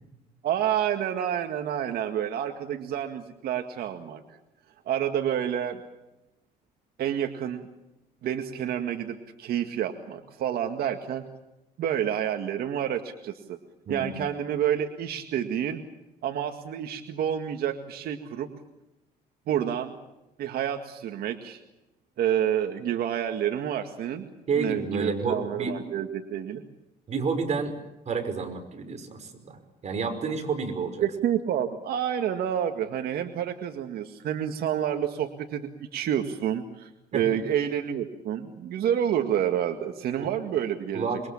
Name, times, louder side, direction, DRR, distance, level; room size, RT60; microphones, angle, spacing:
voice 1, 0.4-4.4 4.9-5.8 7.0-7.6 8.2-11.3 11.8-13.6 13.9-15.8 16.2-18.5 19.5-19.9 20.4-21.6 22.2-24.3 24.6-26.6 31.0-41.1, right 9 dB, 65° right, 5 dB, 2.0 m, -29 dB
voice 2, 13.9-14.2 24.5-25.8 27.1-27.7 28.1-29.6 29.8-31.0 37.1-37.2 40.2-40.3 40.9-41.3, right 5 dB, 40° right, 6 dB, 5.6 m, -30 dB
26.5 x 22.5 x 7.3 m, 0.95 s
cardioid pair, 110°, 17 cm